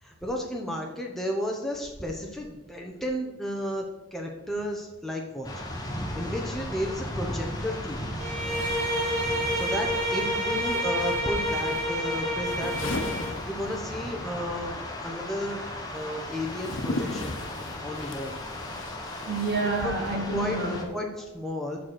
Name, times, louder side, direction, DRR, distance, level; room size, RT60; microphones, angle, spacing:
voice 1, 0.0-5.5 6.1-8.0 9.5-14.7 15.0-15.6 15.9-17.3 17.8-18.4 19.6-19.9 20.3-20.6 20.9-21.8, equal, ahead, 0 dB, 0.8 m, -33 dB
sound 1, 5.4-20.8, left 1 dB, 20° left, 1.2 m, -36 dB
sound 2, 7.5-7.6 8.4-14.2 14.4-20.3, left 2 dB, 85° left, 0.9 m, -39 dB
Bowed string instrument, 8.2-13.4, equal, 35° right, 2.2 m, -29 dB
voice 2, 8.9-9.3 19.2-20.9, right 3 dB, 55° right, 2 dB, 1.2 m, -29 dB
7.5 x 5.9 x 4.6 m, 1.1 s
head